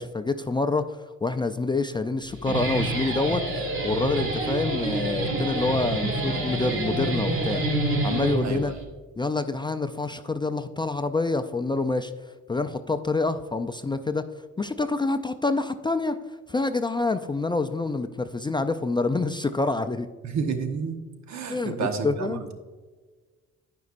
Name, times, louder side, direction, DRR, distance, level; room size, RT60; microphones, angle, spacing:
voice 1, 0.0-7.6 8.0-8.7 9.2-12.1 12.5-14.2 14.6-16.2 16.5-20.1 21.5-22.4, left 3 dB, 15° left, 9 dB, 0.4 m, -27 dB
Guitar, 2.2-8.8, right 2 dB, 45° right, 2.1 m, -27 dB
voice 2, 8.4-8.7 20.2-21.0 21.3-22.5, right 5 dB, 65° right, 6 dB, 1.2 m, -30 dB
12.5 x 5.3 x 2.5 m, 1.4 s
cardioid pair, 90°, 30 cm